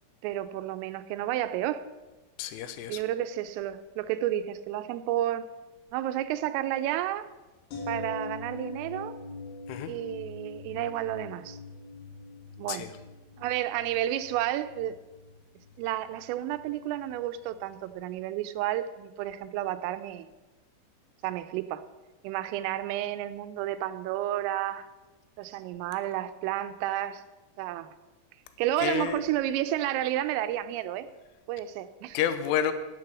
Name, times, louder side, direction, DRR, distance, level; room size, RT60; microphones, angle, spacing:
voice 1, 0.2-1.8 2.9-5.5 5.9-7.3 7.9-9.2 9.9-11.6 12.6-12.9 13.4-14.9 15.8-20.3 21.2-21.8 22.2-24.9 25.4-27.2 27.6-27.9 28.6-31.1 31.5-32.2, right 13 dB, 85° right, 12 dB, 3.2 m, -31 dB
voice 2, 2.4-3.0 9.7-9.9 12.7-12.9 28.8-29.2 32.1-32.7, left 10 dB, 85° left, 10 dB, 3.3 m, -29 dB
sound 1, 7.7-17.6 17.9-18.0, left 3 dB, 55° left, 3.0 m, -43 dB
10.5 x 9.7 x 6.1 m, 1.1 s
omnidirectional pair, 5.8 m